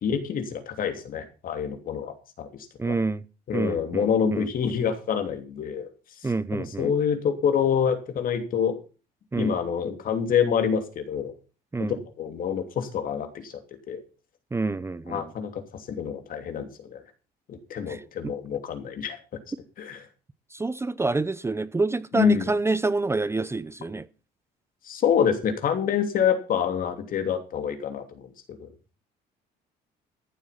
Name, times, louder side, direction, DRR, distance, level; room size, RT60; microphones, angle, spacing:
voice 1, 0.0-2.5 2.9-3.0 3.5-5.9 6.2-8.8 9.4-11.3 11.8-13.5 13.9-14.0 15.1-17.0 17.5-19.2 19.8-20.0 22.1-22.5 24.8-28.7, left 7 dB, 55° left, 3.0 m, -27 dB
voice 2, 2.8-3.2 3.5-4.5 6.2-6.9 9.3-9.5 11.7-12.0 14.5-15.3 17.9-18.3 20.5-24.1, right 3 dB, 15° right, 0.7 m, -27 dB
14.0 x 8.0 x 5.9 m
cardioid pair, 110°, 17 cm